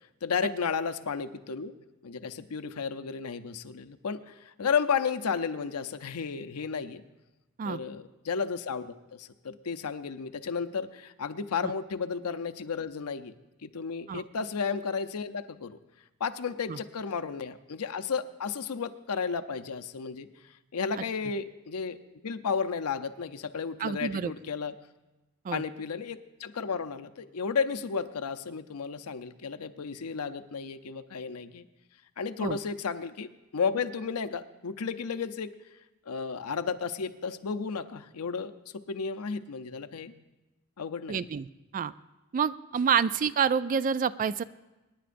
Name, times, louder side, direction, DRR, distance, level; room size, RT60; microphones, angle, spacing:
voice 1, 0.2-1.7 2.0-7.0 7.6-13.3 13.6-15.8 16.2-20.3 20.7-22.0 22.2-24.7 25.5-31.6 32.2-35.5 36.1-40.1 40.8-41.3, left 5 dB, 80° left, 9 dB, 0.6 m, -33 dB
voice 2, 23.8-24.3 25.4-25.6 32.4-32.6 41.1-41.5 41.7-41.9 42.3-44.4, right 7 dB, 40° right, 16 dB, 0.3 m, -28 dB
26.5 x 10.0 x 2.6 m, 1.1 s
head